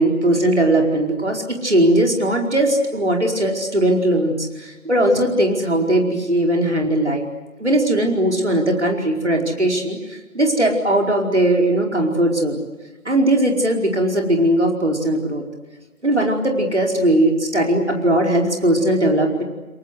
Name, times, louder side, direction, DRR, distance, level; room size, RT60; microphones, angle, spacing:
voice 1, 0.0-7.2 7.6-12.6 13.0-15.4 16.0-19.4, right 1 dB, 50° right, 1 dB, 4.9 m, -19 dB
29.5 x 23.0 x 8.1 m, 1.1 s
figure-of-eight pair, 170°, 45 cm